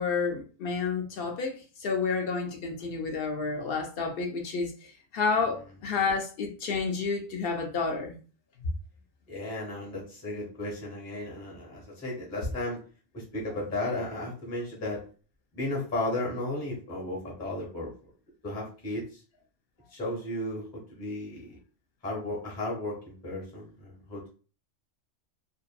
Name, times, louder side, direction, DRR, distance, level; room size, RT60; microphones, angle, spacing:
voice 1, 0.0-1.5 1.8-4.7 5.1-8.2, left 4 dB, 60° left, 0.7 m, -30 dB
voice 2, 9.3-12.8 13.1-15.0 15.5-17.9 18.4-19.2 19.9-21.6 22.0-24.3, left 1 dB, 15° left, 0.7 m, -34 dB
2.6 x 2.4 x 2.2 m
omnidirectional pair, 1.2 m